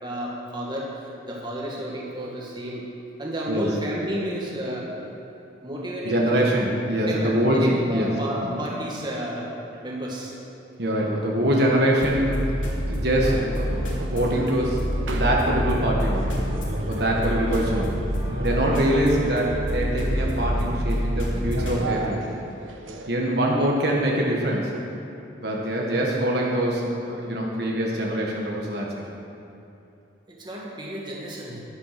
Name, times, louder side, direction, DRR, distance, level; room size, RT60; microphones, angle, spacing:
voice 1, 0.0-2.8 3.2-4.9 5.6-6.5 7.1-9.5 9.8-10.3 30.3-31.6, equal, 25° right, -4 dB, 2.0 m, -31 dB
voice 2, 6.0-8.1 10.8-16.4 16.9-18.0 18.4-22.3 23.1-24.7 25.4-28.9, right 1 dB, 55° right, -2 dB, 1.6 m, -24 dB
sound 1, 12.0-21.8, equal, 85° left, 2.8 m, -27 dB
sound 2, 13.2-23.1, right 2 dB, 90° right, 1.2 m, -37 dB
11.5 x 11.0 x 6.0 m, 2.8 s
head